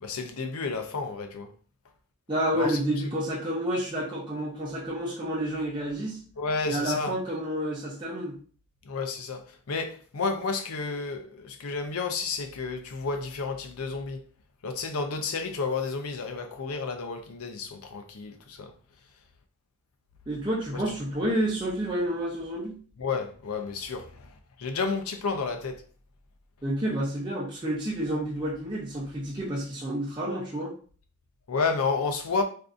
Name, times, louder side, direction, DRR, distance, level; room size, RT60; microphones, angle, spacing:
voice 1, 0.0-1.5 2.5-2.7 6.4-7.1 8.9-9.4 9.7-14.2 14.6-18.7 23.0-24.0 24.6-25.8 31.5-32.4, left 4 dB, 75° left, 0.6 m, -31 dB
voice 2, 2.3-6.2 6.6-8.3 20.3-22.8 26.6-30.7, right 1 dB, 20° right, 0.6 m, -29 dB
3.5 x 2.6 x 2.5 m
head